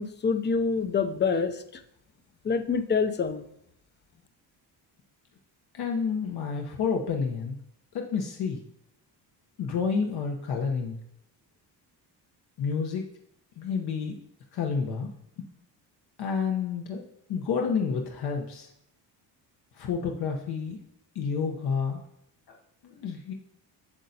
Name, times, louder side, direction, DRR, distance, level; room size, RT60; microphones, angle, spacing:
voice 1, 0.0-1.6 2.4-3.4, left 5 dB, 25° left, 10 dB, 0.5 m, -26 dB
voice 2, 5.7-7.6 7.9-8.6 9.6-11.0 12.6-13.1 13.6-14.2 14.5-15.4 16.2-17.0 17.3-18.7 19.7-20.8 21.1-22.0 22.5-22.6 22.8-23.3, left 5 dB, 65° left, 1 dB, 0.9 m, -29 dB
8.5 x 6.4 x 2.7 m, 0.77 s
cardioid pair, 120°, 42 cm